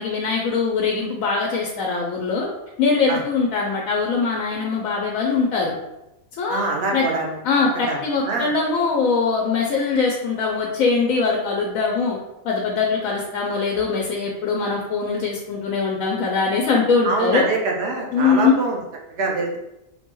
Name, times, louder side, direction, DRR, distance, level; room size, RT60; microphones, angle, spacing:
voice 1, 0.0-2.5 2.8-5.7 6.4-6.7 6.9-7.0 7.4-12.2 12.4-17.5 18.1-18.6, left 4 dB, 80° left, -1 dB, 1.0 m, -22 dB
voice 2, 6.5-7.4 7.9-8.0 8.2-8.5 17.0-18.8 19.2-19.6, right 3 dB, 60° right, -1 dB, 0.9 m, -24 dB
4.1 x 2.2 x 3.0 m, 0.90 s
omnidirectional pair, 1.4 m